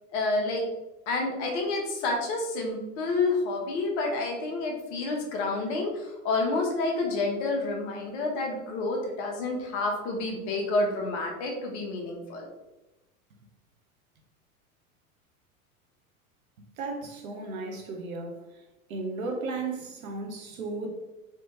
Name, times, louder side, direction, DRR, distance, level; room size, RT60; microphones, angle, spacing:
voice 1, 0.1-0.6 1.1-12.5, left 3 dB, 50° left, 1 dB, 1.0 m, -29 dB
voice 2, 16.8-18.4 18.9-20.9, right 3 dB, 70° right, 2 dB, 0.8 m, -34 dB
3.3 x 2.9 x 2.9 m, 1.0 s
figure-of-eight pair, 85°, 43 cm